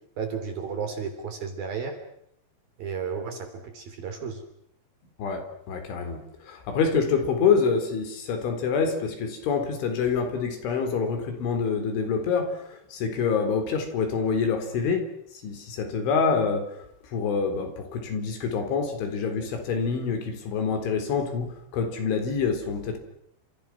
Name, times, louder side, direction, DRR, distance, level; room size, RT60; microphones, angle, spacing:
voice 1, 0.2-2.0 2.8-4.4, right 6 dB, 50° right, 7 dB, 4.6 m, -33 dB
voice 2, 5.7-6.2 6.5-15.0 15.4-16.9 17.1-23.0, left 5 dB, 70° left, 6 dB, 6.4 m, -26 dB
30.0 x 28.0 x 6.1 m, 0.74 s
omnidirectional pair, 5.7 m